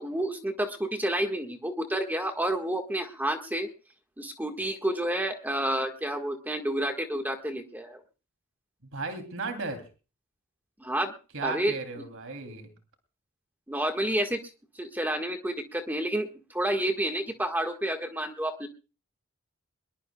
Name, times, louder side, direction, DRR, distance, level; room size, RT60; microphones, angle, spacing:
voice 1, 0.0-3.7 4.2-8.0 10.8-11.1 11.4-11.8 13.7-14.5 14.7-18.7, right 1 dB, 10° right, 5 dB, 1.6 m, -30 dB
voice 2, 8.9-9.8 11.3-12.7, right 3 dB, 65° right, 6 dB, 3.0 m, -35 dB
22.0 x 22.0 x 2.3 m, 0.35 s
head